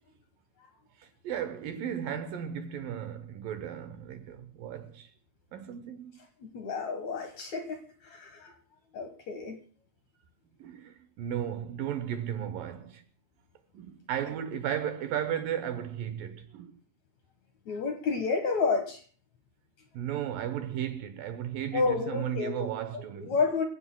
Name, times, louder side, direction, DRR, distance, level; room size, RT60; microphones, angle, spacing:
voice 1, 1.0-5.1 5.5-6.1 10.6-13.0 13.7-16.8 19.9-23.4, right 10 dB, 70° right, 2.3 m, -35 dB
voice 2, 6.4-8.6 8.9-9.6 17.7-19.0 21.7-23.6, left 4 dB, 60° left, 2.1 m, -30 dB
26.0 x 16.5 x 2.2 m
omnidirectional pair, 4.7 m